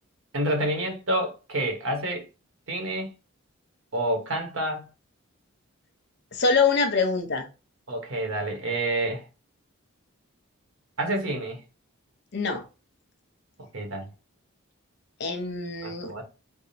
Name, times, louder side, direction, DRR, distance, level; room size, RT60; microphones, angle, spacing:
voice 1, 0.3-2.3 2.7-3.1 3.9-4.9 7.9-9.2 11.0-11.6 13.7-14.1 15.8-16.2, right 1 dB, 70° right, 1.1 m, -28 dB
voice 2, 6.3-7.5 12.3-12.6 15.2-16.1, left 4 dB, 50° left, 0.7 m, -24 dB
3.5 x 2.0 x 4.0 m
head